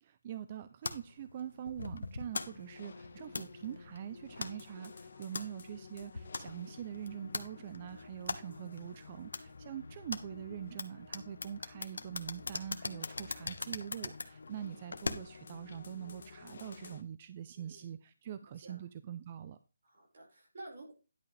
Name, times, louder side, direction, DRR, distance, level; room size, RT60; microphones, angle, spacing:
voice 1, 0.0-19.6, right 10 dB, 20° right, 12 dB, 0.3 m, -44 dB
sound 1, 0.8-15.5, left 3 dB, 85° left, 1.2 m, -43 dB
sound 2, 2.3-17.0, left 4 dB, 45° left, 1.1 m, -53 dB
voice 2, 5.1-5.5 9.6-9.8 17.5-17.9 18.3-18.4 18.6-18.8 19.8-20.9, right 2 dB, 40° right, -1 dB, 4.7 m, -52 dB
11.0 x 7.3 x 3.2 m, 0.30 s
hypercardioid pair, 175°, 0 cm